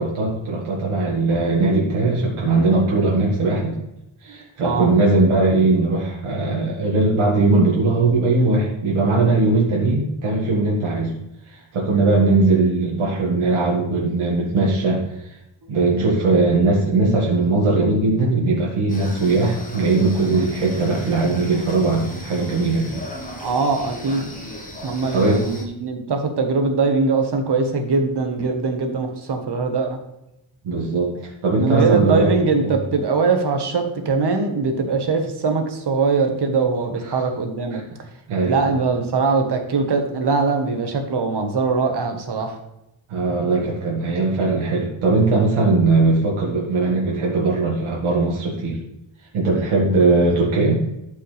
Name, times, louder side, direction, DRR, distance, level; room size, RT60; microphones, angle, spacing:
voice 1, 0.0-3.7 4.2-11.1 11.5-15.4 15.7-23.0 25.1-25.5 30.6-32.3 32.6-32.7 38.3-38.6 43.1-48.8 49.3-50.8, right 3 dB, 80° right, -4 dB, 2.0 m, -19 dB
voice 2, 4.3-4.9 23.4-24.4 24.8-30.0 31.6-37.8 38.4-42.6, right 4 dB, 55° right, 5 dB, 1.4 m, -21 dB
sound 1, 18.9-25.6, equal, 15° left, 1.5 m, -37 dB
12.5 x 5.6 x 3.4 m, 0.87 s
wide cardioid pair, 145°, 49 cm